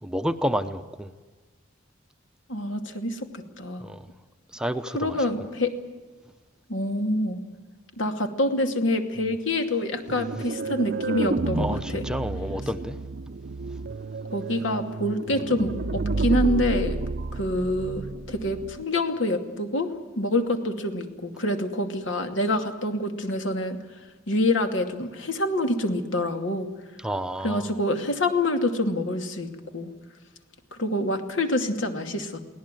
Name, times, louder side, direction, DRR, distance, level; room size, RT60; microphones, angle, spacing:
voice 1, 0.0-1.1 3.8-4.1 4.5-5.2 10.4-10.5 11.6-12.9 27.0-27.7, equal, 5° right, 9 dB, 0.8 m, -30 dB
voice 2, 2.5-3.8 4.9-5.7 6.7-7.4 8.0-12.0 14.3-17.0 17.3-19.9 20.2-23.8 24.3-26.7 27.4-29.9 30.7-32.4, left 1 dB, 75° left, 6 dB, 2.5 m, -26 dB
sound 1, 10.1-18.8, right 3 dB, 55° right, 0.6 m, -30 dB
23.5 x 17.5 x 9.2 m, 1.3 s
head